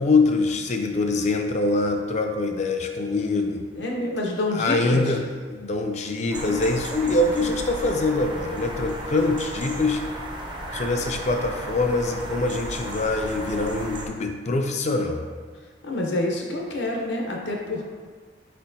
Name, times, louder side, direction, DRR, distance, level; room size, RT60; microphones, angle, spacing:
voice 1, 0.0-3.6 4.5-10.0 10.7-15.2, left 2 dB, 40° left, 4 dB, 0.4 m, -24 dB
voice 2, 3.8-5.0 15.8-17.8, left 2 dB, 70° left, 0 dB, 0.7 m, -27 dB
sound 1, 6.3-14.1, right 1 dB, 25° right, 0.5 m, -34 dB
4.3 x 4.3 x 2.6 m, 1.5 s
head